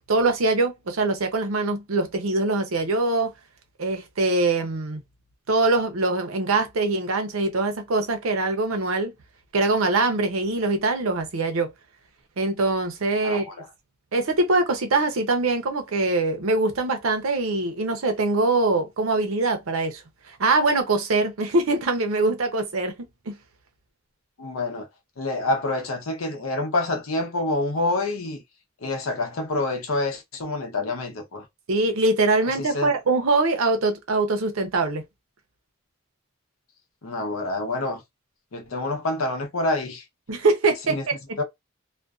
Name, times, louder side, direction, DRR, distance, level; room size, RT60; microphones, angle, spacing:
voice 1, 0.1-3.3 3.8-5.0 5.5-9.1 9.5-11.7 12.4-13.5 14.1-20.0 20.4-23.3 31.7-35.0 40.3-41.2, right 3 dB, 90° right, 0.7 m, -23 dB
voice 2, 13.2-13.7 24.4-24.9 25.2-28.4 28.8-31.4 32.6-32.9 37.0-38.0 38.5-40.0 40.9-41.0 41.4-41.5, left 2 dB, 85° left, 0.7 m, -27 dB
2.5 x 2.2 x 2.3 m
head